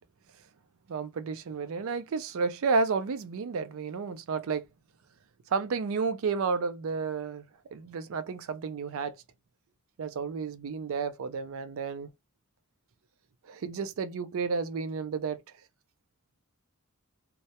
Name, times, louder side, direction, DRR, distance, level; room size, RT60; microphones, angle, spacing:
voice 1, 0.9-4.7 5.5-7.4 7.7-9.2 10.0-12.1 13.5-15.4, right 5 dB, 65° right, 0.4 m, -31 dB
2.2 x 2.0 x 2.7 m
head